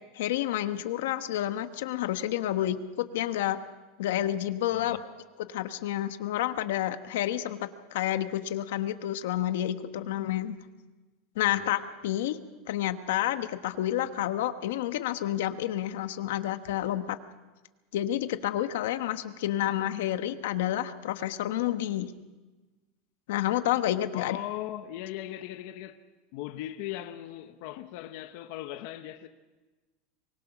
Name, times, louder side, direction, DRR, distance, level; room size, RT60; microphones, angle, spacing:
voice 1, 0.1-3.6 4.0-5.0 5.4-10.6 11.4-12.4 12.7-17.2 17.9-22.1 23.3-24.4, left 12 dB, 80° left, 1.1 m, -29 dB
voice 2, 4.7-5.0 11.4-11.7 24.1-26.0 26.3-29.3, left 13 dB, 50° left, 0.9 m, -39 dB
24.0 x 20.5 x 6.0 m
supercardioid pair, 180°, 0 cm